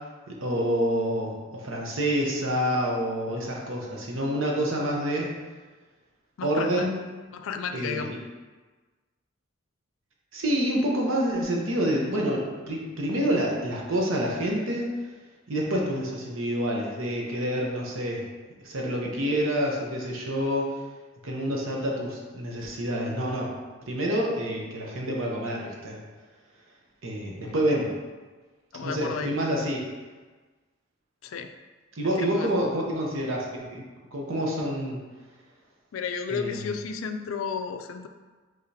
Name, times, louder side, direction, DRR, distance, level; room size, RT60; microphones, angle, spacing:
voice 1, 0.3-5.3 6.4-7.0 7.7-8.0 10.3-14.9 15.5-18.3 18.6-20.7 21.2-23.5 23.9-26.0 27.0-27.9 28.8-29.8 31.9-33.8 34.1-35.0 36.3-36.6, equal, 75° right, -2 dB, 0.9 m, -27 dB
voice 2, 6.4-6.8 7.3-8.1 27.4-27.6 28.7-29.3 31.2-31.5 32.0-32.5 35.9-38.1, left 6 dB, 75° left, 7 dB, 0.4 m, -33 dB
4.9 x 3.8 x 2.8 m, 1.3 s
head